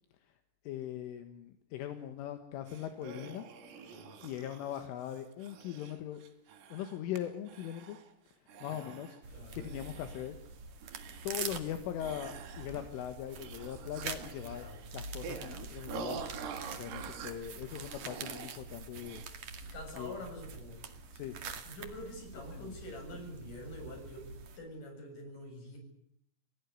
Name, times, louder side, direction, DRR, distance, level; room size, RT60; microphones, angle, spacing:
voice 1, 0.7-3.5 3.7-3.9 4.2-6.2 6.7-8.0 8.6-9.2 9.5-10.4 11.2-14.7 14.9-16.2 16.8-19.2 20.0-20.2 21.1-21.4 22.5-22.8, left 11 dB, 75° left, 8 dB, 3.9 m, -40 dB
sound 1, 2.7-7.2 7.5-8.1 8.5-9.2 9.6-10.5 10.8-11.8 12.0-13.0 13.3-18.6 19.0-19.3, right 5 dB, 85° right, 5.3 m, -47 dB
voice 2, 3.9-4.3 8.7-9.0 9.3-9.6 14.5-14.8 19.6-20.8 21.7-25.8, left 1 dB, 40° left, 4 dB, 8.6 m, -46 dB
sound 2, 9.2-24.6, right 5 dB, 45° right, 2.4 m, -45 dB
28.0 x 18.0 x 9.6 m, 0.71 s
omnidirectional pair, 5.9 m